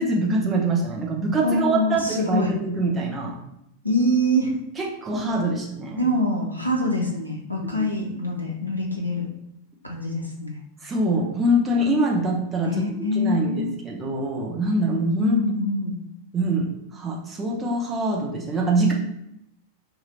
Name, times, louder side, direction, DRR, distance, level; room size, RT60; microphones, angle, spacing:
voice 1, 0.0-3.4 4.8-6.1 7.8-7.9 10.8-12.7 13.1-15.4 16.3-18.9, right 1 dB, 20° right, -1 dB, 0.7 m, -24 dB
voice 2, 1.4-2.5 3.8-4.6 6.0-9.3 9.8-10.6 12.6-13.7 15.2-16.0, left 1 dB, 90° left, -1 dB, 0.5 m, -24 dB
2.9 x 2.5 x 4.1 m, 0.80 s
figure-of-eight pair, 90°, 0 cm